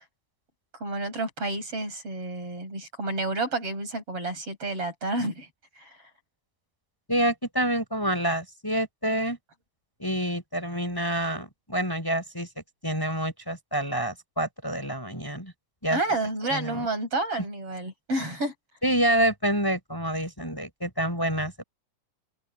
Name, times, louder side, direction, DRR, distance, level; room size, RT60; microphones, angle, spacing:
voice 1, 0.7-5.5 5.8-5.9 15.9-18.5, right 2 dB, 45° right, 8.6 m, -30 dB
voice 2, 7.1-9.4 10.0-12.5 12.8-15.5 15.8-16.0 16.5-16.9 18.8-21.6, right 1 dB, 5° left, 7.2 m, -27 dB
open air
omnidirectional pair, 3.7 m